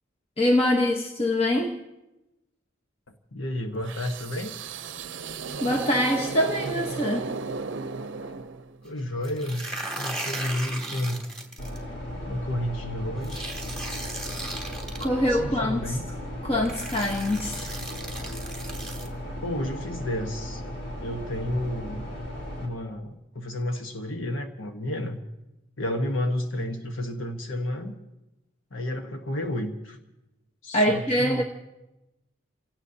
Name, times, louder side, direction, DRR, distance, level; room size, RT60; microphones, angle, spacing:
voice 1, 0.4-1.8 5.6-7.3 15.0-16.0 16.4-17.7 30.7-31.4, left 1 dB, 30° left, 0 dB, 1.1 m, -24 dB
voice 2, 3.3-4.5 8.2-8.3 8.8-9.7 10.0-11.3 12.3-13.6 15.1-16.1 19.4-20.6 21.0-22.1 22.6-25.2 25.8-28.0 28.7-30.0 30.6-31.4, left 1 dB, 85° left, 4 dB, 1.3 m, -31 dB
sound 1, 3.8-8.9, right 4 dB, 65° right, 0.6 m, -35 dB
sound 2, 9.2-11.8 13.2-15.1 16.1-16.2 16.6-19.1, right 1 dB, 5° left, 2.5 m, -36 dB
sound 3, 11.6-22.7, equal, 70° left, 4.0 m, -36 dB
29.0 x 17.5 x 2.8 m, 0.97 s
head